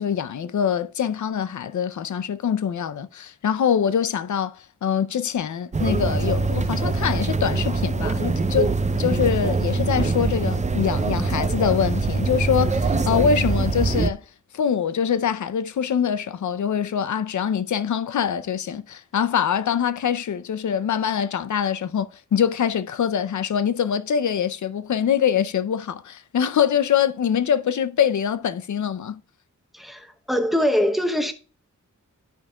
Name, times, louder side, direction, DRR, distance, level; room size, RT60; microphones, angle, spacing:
voice 1, 0.0-8.7 9.0-14.2 14.5-29.2, left 8 dB, 70° left, 0.6 m, -24 dB
sound 1, 5.7-14.1, right 3 dB, 25° right, 0.5 m, -23 dB
voice 2, 29.8-31.3, equal, ahead, 0.8 m, -23 dB
13.0 x 5.4 x 2.3 m
wide cardioid pair, 165°, 30 cm